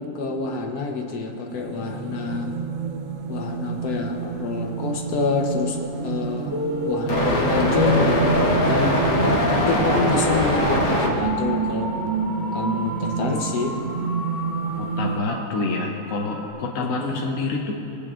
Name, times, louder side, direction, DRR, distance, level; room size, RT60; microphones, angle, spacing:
voice 1, 0.0-2.6 3.3-9.0 9.6-12.0 12.5-13.8 16.8-17.2, left 4 dB, 90° left, 2 dB, 1.5 m, -27 dB
sound 1, 1.5-15.2, right 6 dB, 70° right, 0.8 m, -28 dB
sound 2, 6.5-16.5, left 1 dB, 15° right, 0.7 m, -30 dB
sound 3, 7.1-11.1 11.4-11.5 12.7-12.8 13.2-13.4 13.9-14.0, left 1 dB, 50° left, 1.4 m, -22 dB
voice 2, 14.8-17.7, left 3 dB, 65° left, 0 dB, 1.1 m, -27 dB
22.0 x 8.3 x 2.5 m, 2.7 s
omnidirectional pair, 1.6 m